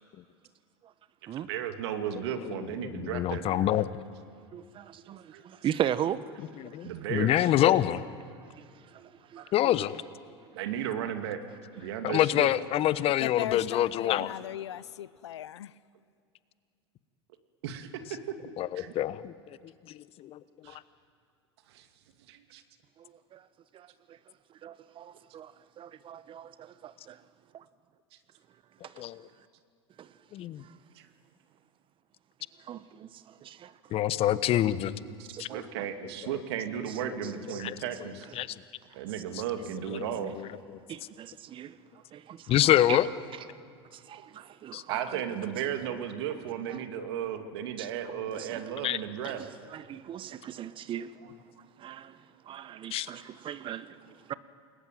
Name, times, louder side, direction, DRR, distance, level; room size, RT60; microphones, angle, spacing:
voice 1, 1.5-3.7 5.3-5.4 6.8-7.5 9.4-9.5 10.5-11.4 11.8-12.5 17.6-18.3 18.7-18.9 20.6-20.8 21.7-21.9 22.3-22.6 31.0-31.1 35.2-38.3 38.9-40.3 44.9-49.4, right 10 dB, 65° right, 2.6 m, -35 dB
voice 2, 2.8-3.9 6.6-8.1 9.5-9.9 12.0-14.3 18.6-19.6 20.2-20.4 29.0-29.1 33.9-35.0 35.4-35.5 37.6-37.8 38.4-38.5 39.9-40.0 42.5-43.1 44.7-44.8 47.0-47.1 48.8-49.0 52.9-53.1, left 13 dB, 45° left, 1.1 m, -26 dB
voice 3, 4.5-6.5 6.8-6.9 8.4-9.7 23.0-23.5 23.7-24.2 24.6-27.2 27.5-27.6 30.7-30.8 32.6-33.9 35.1-35.9 37.2-37.6 38.9-39.0 40.9-41.8 42.1-42.6 42.9-43.0 43.9-45.4 46.7-46.8 47.8-47.9 48.3-48.6 49.2-51.3 51.8-54.3, right 10 dB, 35° right, 1.2 m, -39 dB
voice 4, 13.2-15.7, left 11 dB, 80° left, 0.7 m, -38 dB
28.5 x 21.5 x 9.3 m
hypercardioid pair, 85°, 14 cm